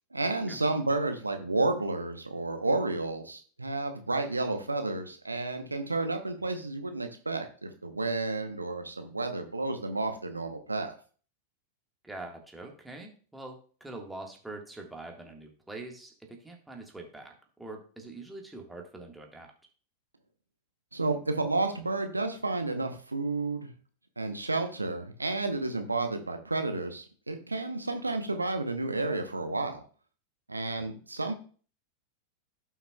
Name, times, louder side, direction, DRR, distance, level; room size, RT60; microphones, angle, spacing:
voice 1, 0.1-10.9 20.9-23.7 24.2-29.8 30.5-31.3, right 2 dB, 80° right, 6 dB, 0.9 m, -31 dB
voice 2, 12.0-19.5 30.8-30.9, right 2 dB, 5° right, 1 dB, 1.7 m, -44 dB
16.0 x 5.8 x 2.3 m, 0.41 s
figure-of-eight pair, 90°, 0 cm